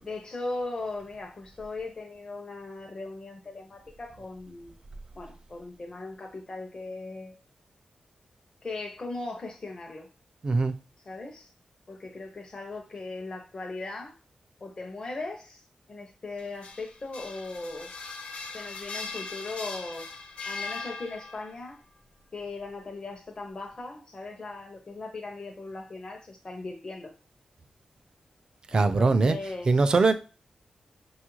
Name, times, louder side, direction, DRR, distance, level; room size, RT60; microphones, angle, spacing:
voice 1, 0.0-4.8 5.1-7.4 8.6-10.1 11.1-11.5 11.9-14.2 14.6-17.9 18.5-20.1 20.4-21.8 22.3-27.1 28.7-29.9, left 3 dB, 35° left, 0.6 m, -38 dB
voice 2, 10.4-10.7 28.7-29.4 29.7-30.1, right 3 dB, 40° right, 0.3 m, -21 dB
sound 1, 16.4-21.6, left 4 dB, 85° left, 0.6 m, -39 dB
5.5 x 2.3 x 3.0 m
wide cardioid pair, 145°, 2 cm